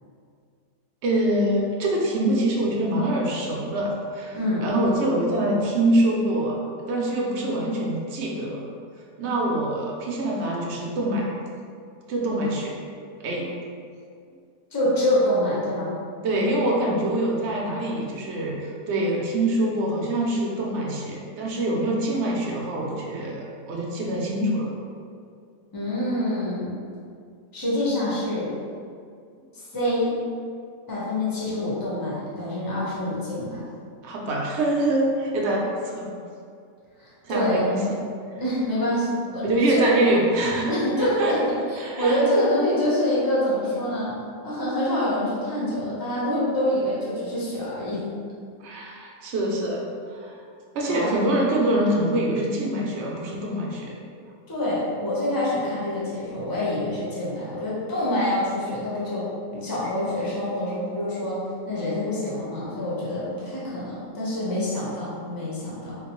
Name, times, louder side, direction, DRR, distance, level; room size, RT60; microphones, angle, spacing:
voice 1, 1.0-8.6 9.2-11.3 12.1-12.7 13.2-13.5 16.2-24.7 34.0-36.1 37.2-38.0 39.4-40.7 41.0-41.3 41.8-42.2 48.6-50.4 50.7-54.0, right 1 dB, 70° right, -2 dB, 0.6 m, -25 dB
voice 2, 4.3-4.7 14.7-15.9 25.7-26.7 27.5-28.5 29.5-30.2 30.9-33.6 37.0-37.7 38.4-39.9 40.7-48.0 50.9-51.1 54.5-61.4 61.7-66.0, left 1 dB, 35° left, -8 dB, 0.3 m, -26 dB
3.8 x 2.2 x 2.9 m, 2.2 s
omnidirectional pair, 1.7 m